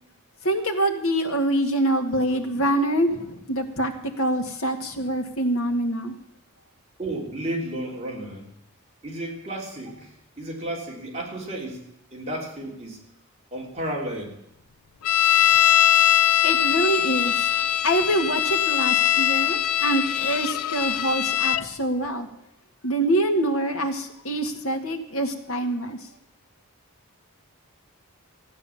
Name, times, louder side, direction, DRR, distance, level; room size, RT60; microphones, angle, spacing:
voice 1, 0.4-3.9 4.2-6.2 16.4-17.5 17.8-22.3 22.8-26.0, right 1 dB, 70° left, 4 dB, 2.0 m, -25 dB
voice 2, 7.0-8.4 9.0-11.9 12.1-13.0 13.5-14.3, right 1 dB, 30° right, -2 dB, 3.3 m, -32 dB
sound 1, 15.0-21.6, left 11 dB, 90° left, 0.4 m, -21 dB
15.0 x 9.7 x 7.2 m, 0.80 s
head